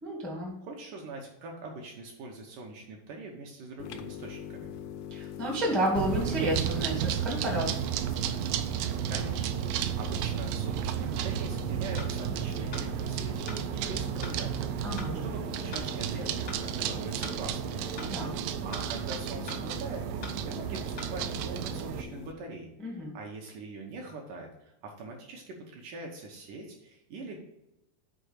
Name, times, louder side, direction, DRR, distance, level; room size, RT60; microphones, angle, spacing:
voice 1, 0.0-0.5 5.1-7.7 14.8-15.2 18.0-18.3 22.8-23.1, equal, ahead, -3 dB, 0.3 m, -31 dB
voice 2, 0.6-4.7 9.1-17.9 18.6-22.7 23.1-27.4, right 3 dB, 70° right, 1 dB, 2.1 m, -43 dB
sound 1, 3.8-22.3, left 9 dB, 80° left, 2.1 m, -43 dB
sound 2, 6.0-22.0, right 11 dB, 90° right, 2.6 m, -33 dB
sound 3, 12.0-12.1 12.7-12.9 13.5-13.6 14.2-14.4 15.0-15.1 15.7-15.9 16.5-16.6 17.2-17.4 18.0-18.1 18.7-18.9 19.5-19.6 20.2-20.4 21.0-21.1, left 3 dB, 65° left, 1.1 m, -42 dB
6.8 x 4.8 x 6.4 m, 0.89 s
omnidirectional pair, 4.6 m